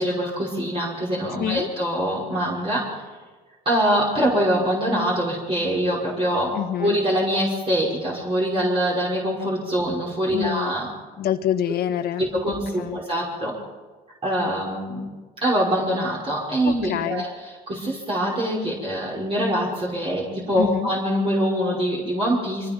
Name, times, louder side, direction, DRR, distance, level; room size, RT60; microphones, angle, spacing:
voice 1, 0.0-3.0 3.7-10.9 12.2-13.5 14.2-15.1 15.4-17.3 17.7-22.7, equal, 35° right, -5 dB, 5.6 m, -24 dB
voice 2, 1.4-1.7 6.5-7.0 10.3-10.7 11.2-12.3 12.8-13.0 16.6-17.2 20.5-20.9, left 10 dB, 65° left, 8 dB, 1.5 m, -26 dB
25.0 x 20.0 x 5.4 m, 1.4 s
cardioid pair, 110°, 17 cm